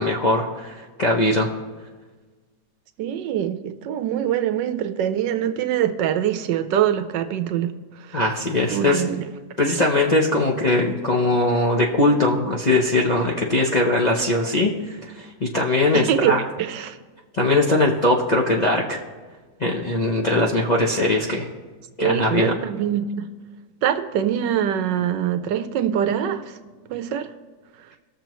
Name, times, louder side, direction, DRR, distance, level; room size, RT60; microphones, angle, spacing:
voice 1, 0.0-1.5 8.1-9.0 9.6-16.4 17.3-19.0 19.6-21.5 22.0-22.6, left 2 dB, 40° left, 0.6 m, -20 dB
voice 2, 3.0-8.2 8.7-9.2 15.9-17.0 22.0-23.3 23.8-26.6 26.9-27.3, right 10 dB, 80° right, 1.3 m, -24 dB
19.5 x 6.8 x 3.1 m
omnidirectional pair, 1.9 m